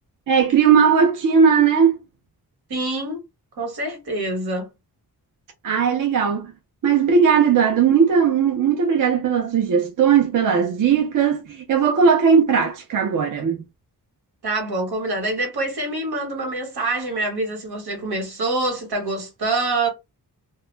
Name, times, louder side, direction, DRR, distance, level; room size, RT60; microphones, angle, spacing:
voice 1, 0.3-2.0 5.6-6.5 6.8-13.6, right 6 dB, 55° right, 0.6 m, -18 dB
voice 2, 2.7-3.2 3.6-4.7 14.4-19.9, right 2 dB, 80° right, 1.2 m, -25 dB
2.3 x 2.1 x 3.1 m
wide cardioid pair, 170°, 38 cm